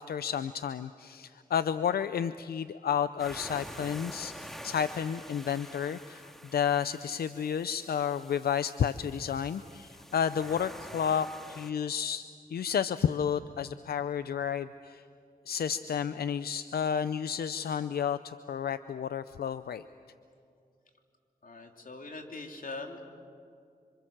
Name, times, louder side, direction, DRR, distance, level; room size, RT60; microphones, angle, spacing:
voice 1, 0.0-4.3 4.6-12.2 12.5-15.0 15.5-19.8, left 8 dB, 90° left, 13 dB, 0.5 m, -31 dB
sound 1, 3.2-11.7, equal, ahead, 2.0 m, -47 dB
voice 2, 21.4-23.0, left 3 dB, 65° left, 3 dB, 3.4 m, -42 dB
26.5 x 26.5 x 7.4 m, 2.4 s
cardioid pair, 50°, 16 cm